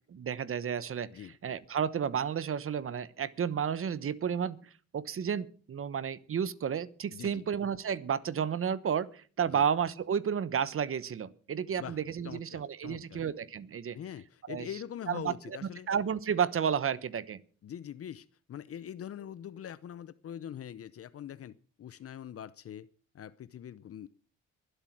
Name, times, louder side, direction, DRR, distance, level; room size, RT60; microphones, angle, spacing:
voice 1, 0.1-4.6 4.9-14.0 14.5-14.7 15.1-15.3 15.9-17.4, right 7 dB, 45° right, 17 dB, 1.1 m, -32 dB
voice 2, 7.1-7.5 9.5-9.7 11.7-12.0 12.2-13.2 13.9-15.9 17.6-22.9 23.1-24.1, left 9 dB, 50° left, 17 dB, 0.7 m, -43 dB
22.5 x 8.1 x 6.1 m, 0.42 s
cardioid pair, 90°, 30 cm